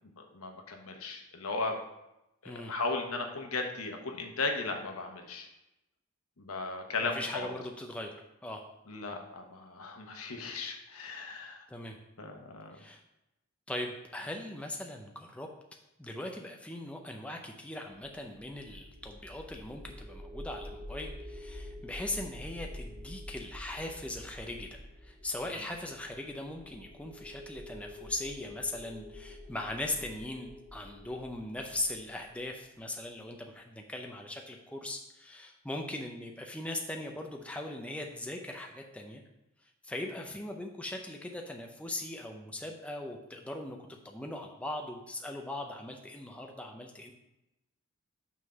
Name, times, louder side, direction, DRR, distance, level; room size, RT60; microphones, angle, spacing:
voice 1, 0.2-1.8 2.4-5.5 6.4-7.5 8.9-11.7 12.2-12.8 25.5-25.6, left 3 dB, 85° left, 3 dB, 1.0 m, -36 dB
voice 2, 7.1-8.2 8.4-8.6 11.7-12.0 12.7-13.0 13.7-15.5 16.0-39.2 39.8-43.8 44.0-47.1, left 1 dB, 5° left, 2 dB, 0.5 m, -40 dB
sound 1, 17.9-33.0, left 1 dB, 85° right, 2.5 m, -48 dB
6.2 x 3.7 x 5.7 m, 0.91 s
head